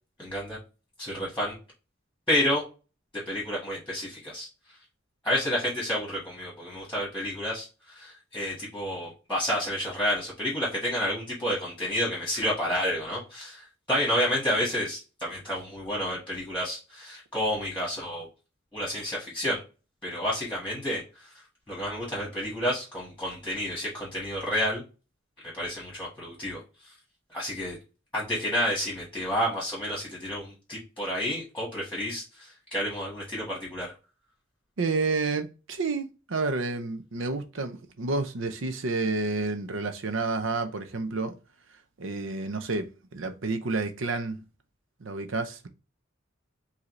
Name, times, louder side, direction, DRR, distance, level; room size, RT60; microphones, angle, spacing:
voice 1, 0.2-0.6 1.0-1.5 2.3-2.6 3.3-4.5 5.2-18.3 18.7-19.6 20.0-21.3 21.7-24.8 25.5-26.9 27.3-27.8 28.1-33.9, equal, 5° left, 1.6 m, -30 dB
voice 2, 34.8-41.4 42.0-44.4 45.0-45.7, right 3 dB, 70° right, 0.7 m, -30 dB
4.9 x 2.8 x 3.1 m
head